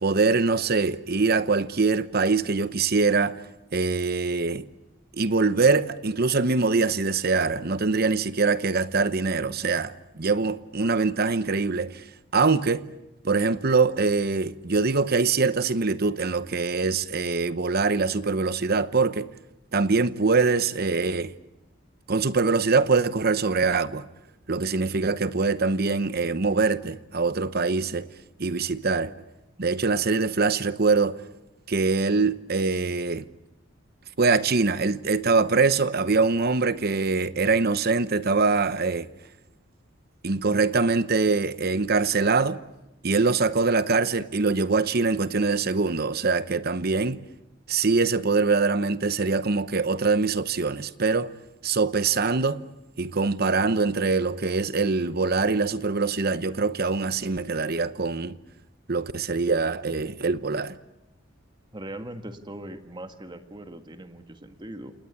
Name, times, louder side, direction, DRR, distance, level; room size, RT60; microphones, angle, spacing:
voice 1, 0.0-3.4 3.7-4.7 5.1-12.0 12.3-12.9 13.2-19.3 19.7-21.3 22.1-24.0 24.5-28.1 28.4-29.1 29.6-31.2 31.7-33.3 34.2-39.1 40.2-42.6 43.0-47.2 47.7-51.3 51.6-52.6 53.0-58.4 58.9-60.8, right 4 dB, 50° right, 0.9 m, -23 dB
voice 2, 61.7-64.9, right 1 dB, 25° right, 1.8 m, -40 dB
28.5 x 19.0 x 8.4 m
head